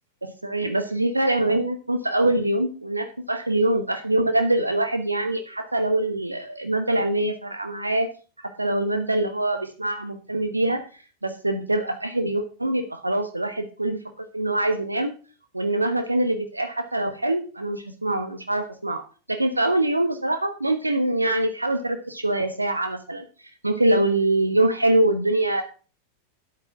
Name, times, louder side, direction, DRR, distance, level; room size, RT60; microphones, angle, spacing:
voice 1, 0.2-8.1 8.6-10.8 11.2-14.0 14.3-15.1 15.5-19.0 19.3-23.2 23.6-25.6, right 1 dB, 85° right, 7 dB, 1.1 m, -24 dB
11.0 x 8.1 x 4.7 m, 0.37 s
figure-of-eight pair, 90°, 0 cm